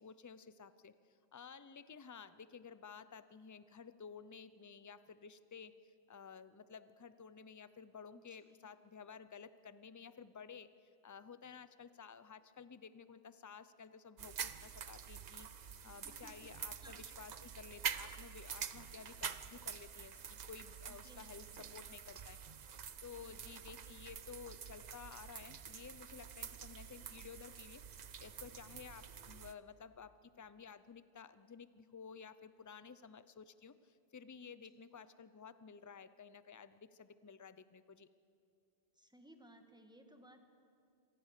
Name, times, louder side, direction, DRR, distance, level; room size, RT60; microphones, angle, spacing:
voice 1, 0.0-21.5 21.7-22.7 23.0-27.8 28.2-38.1, left 6 dB, 25° left, 14 dB, 0.4 m, -54 dB
voice 2, 8.3-8.7 15.8-16.3 16.8-17.0 20.9-21.3 21.5-21.8 23.2-23.3 34.7-34.8 38.9-40.4, right 1 dB, 5° right, 5 dB, 1.6 m, -61 dB
sound 1, 14.2-29.5, right 7 dB, 45° right, 0.7 m, -47 dB
25.5 x 18.5 x 6.7 m, 2.5 s
omnidirectional pair, 1.1 m